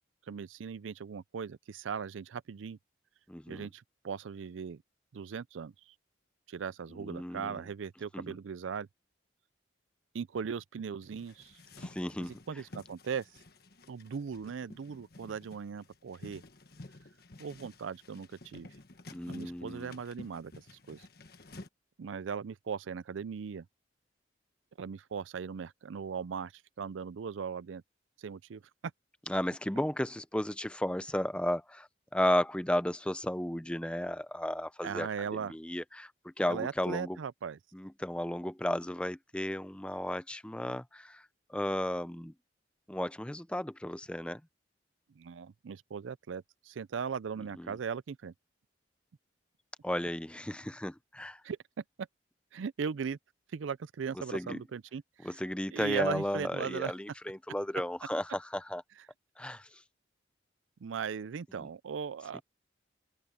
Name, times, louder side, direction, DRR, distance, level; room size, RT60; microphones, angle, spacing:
voice 1, 0.3-2.8 3.5-4.8 5.1-5.9 6.5-8.9 10.1-11.6 12.3-13.4 13.9-16.4 17.4-18.7 19.3-21.1 22.0-23.7 24.8-27.8 28.2-28.6 34.8-35.5 36.5-37.6 45.2-48.3 51.4-51.6 52.0-52.1 52.5-53.2 53.5-55.4 55.7-56.9 60.8-62.4, right 6 dB, 90° right, 0.4 m, -38 dB
voice 2, 3.3-3.7 7.0-7.6 8.1-8.4 11.8-12.4 19.1-19.9 29.3-31.9 32.1-35.1 35.5-37.2 37.7-41.2 41.5-42.3 42.9-44.4 47.6-47.7 49.8-51.4 54.2-54.6 55.2-58.8 59.4-59.7 61.6-61.7 62.3-62.4, left 1 dB, 5° left, 0.6 m, -34 dB
sound 1, 11.0-21.7, left 2 dB, 55° left, 1.5 m, -52 dB
open air
head